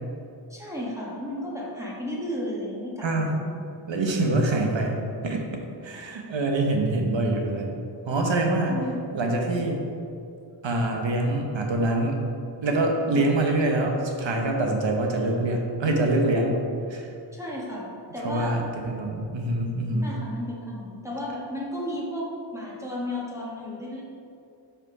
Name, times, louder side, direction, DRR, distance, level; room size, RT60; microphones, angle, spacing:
voice 1, 0.5-3.6 8.6-9.0 13.1-13.2 17.3-18.5 20.0-24.0, equal, 5° right, -5 dB, 1.3 m, -33 dB
voice 2, 3.0-3.3 3.9-8.8 9.1-9.8 10.6-12.2 12.6-16.6 16.9-17.1 18.2-20.1, right 2 dB, 75° right, 2 dB, 1.1 m, -25 dB
5.3 x 5.1 x 4.8 m, 2.5 s
wide cardioid pair, 120°, 45 cm